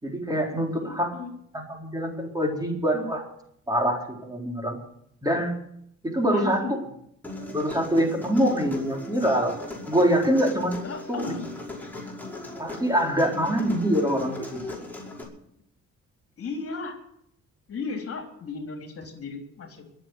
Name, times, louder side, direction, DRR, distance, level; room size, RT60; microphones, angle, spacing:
voice 1, 0.0-1.1 1.5-3.2 3.7-4.8 5.2-5.5 6.0-6.6 7.5-9.6 9.9-10.8 11.1-11.4 12.6-14.8, equal, 15° right, 1 dB, 3.9 m, -24 dB
voice 2, 0.8-1.4 6.3-6.7 10.8-11.5 16.4-17.0 17.7-19.8, left 4 dB, 50° left, 3 dB, 3.6 m, -35 dB
Human voice, 7.2-15.2, left 1 dB, 5° left, 5.5 m, -38 dB
21.5 x 7.9 x 7.9 m, 0.74 s
cardioid pair, 90°, 30 cm